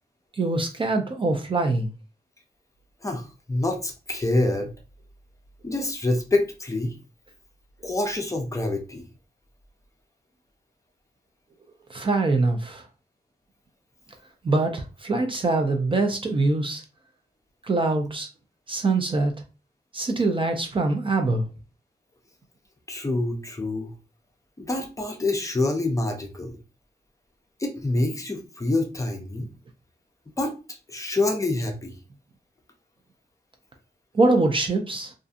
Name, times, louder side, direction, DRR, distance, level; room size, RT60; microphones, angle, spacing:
voice 1, 0.4-1.9 11.9-12.8 14.4-16.8 17.6-18.3 18.7-19.3 19.9-21.4 34.1-35.1, right 3 dB, 30° right, 0.4 m, -23 dB
voice 2, 3.0-4.7 5.6-7.0 7.8-9.1 22.9-23.9 24.6-26.6 27.6-29.5 30.4-31.9, left 2 dB, 20° left, 0.5 m, -26 dB
2.6 x 2.4 x 2.4 m
wide cardioid pair, 110°, 17 cm